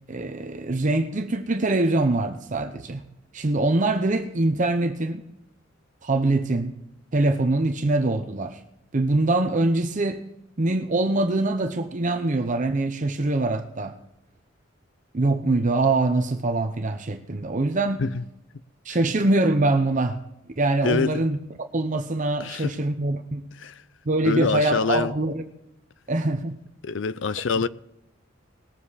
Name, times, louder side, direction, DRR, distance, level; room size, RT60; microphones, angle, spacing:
voice 1, 0.1-3.0 3.3-5.2 6.0-6.8 7.1-8.6 8.9-10.2 10.6-14.0 15.1-18.0 18.8-20.2 20.6-23.4 24.1-25.4 26.1-26.6, right 2 dB, 40° right, 0.8 m, -23 dB
voice 2, 20.8-21.3 22.4-22.8 23.5-23.8 24.2-25.1 26.8-27.7, left 5 dB, 70° left, 0.5 m, -26 dB
20.0 x 7.5 x 4.1 m
head